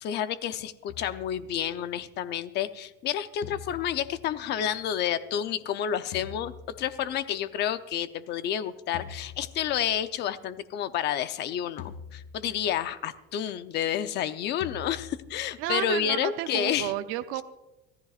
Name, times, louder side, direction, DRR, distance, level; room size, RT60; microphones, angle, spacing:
voice 1, 0.0-16.9, left 10 dB, 35° left, 12 dB, 0.7 m, -30 dB
sound 1, 0.9-2.2 3.4-5.1 6.1-7.5 8.9-10.3 11.8-13.0 14.6-16.0, left 7 dB, 60° left, 1.5 m, -46 dB
voice 2, 15.6-17.4, right 14 dB, 45° right, 9 dB, 0.6 m, -32 dB
25.0 x 15.0 x 2.5 m, 0.98 s
cardioid pair, 170°, 30 cm